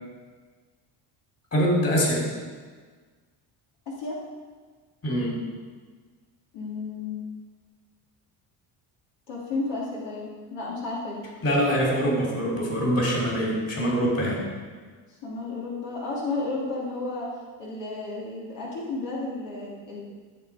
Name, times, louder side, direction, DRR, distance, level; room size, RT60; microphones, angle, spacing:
voice 1, 1.5-2.2 5.0-5.3 11.4-14.4, equal, 35° left, -2 dB, 4.0 m, -24 dB
voice 2, 6.5-7.2 9.3-11.2 15.2-17.3 17.6-20.0, left 3 dB, 75° left, -5 dB, 3.1 m, -32 dB
15.0 x 7.4 x 5.0 m, 1.5 s
cardioid pair, 110°, 43 cm